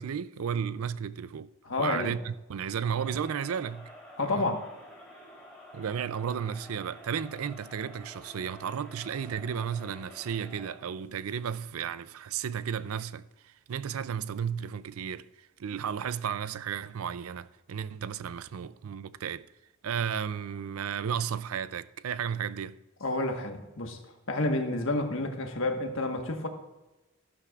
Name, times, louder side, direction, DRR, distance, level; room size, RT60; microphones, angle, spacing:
voice 1, 0.0-1.5 1.8-3.9 4.2-4.5 5.7-19.4 19.8-22.8, right 7 dB, 85° right, 0.4 m, -33 dB
voice 2, 1.6-2.2 4.2-4.7 23.0-24.0 24.3-26.5, left 2 dB, 65° left, 1.4 m, -30 dB
Crowd, 2.8-10.9, equal, 5° left, 3.3 m, -50 dB
13.0 x 11.5 x 2.4 m
head